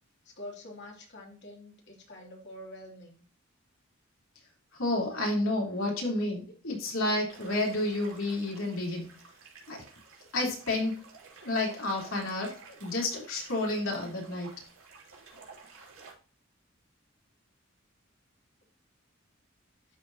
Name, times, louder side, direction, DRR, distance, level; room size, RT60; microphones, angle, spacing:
voice 1, 0.2-3.2, left 1 dB, 55° left, 0 dB, 2.9 m, -46 dB
voice 2, 4.7-9.2 9.7-9.8 10.3-11.0 11.4-14.5, left 2 dB, 75° left, 0 dB, 3.5 m, -30 dB
sound 1, 7.3-16.1, right 4 dB, 80° right, 3.2 m, -52 dB
12.0 x 4.8 x 2.8 m, 0.39 s
head